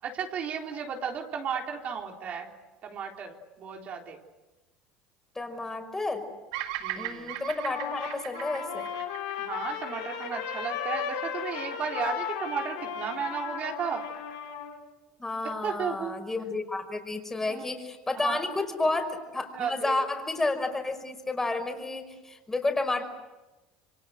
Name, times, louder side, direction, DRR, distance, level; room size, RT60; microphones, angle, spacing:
voice 1, 0.0-2.5 2.8-4.2 6.8-7.4 9.4-14.0 15.6-16.1 17.5-17.7 18.2-18.5 18.8-19.0 19.5-20.1, right 6 dB, 45° right, 2 dB, 3.8 m, -34 dB
voice 2, 5.3-6.2 7.0-8.9 15.2-19.1 19.3-23.0, left 2 dB, 15° left, 6 dB, 5.6 m, -31 dB
Bird vocalization bird call bird song, 6.5-10.8, right 13 dB, 85° right, 2.1 m, -38 dB
Trumpet, 7.6-14.8, left 8 dB, 85° left, 5.7 m, -35 dB
28.5 x 24.0 x 8.0 m, 1.1 s
supercardioid pair, 100°, 3 cm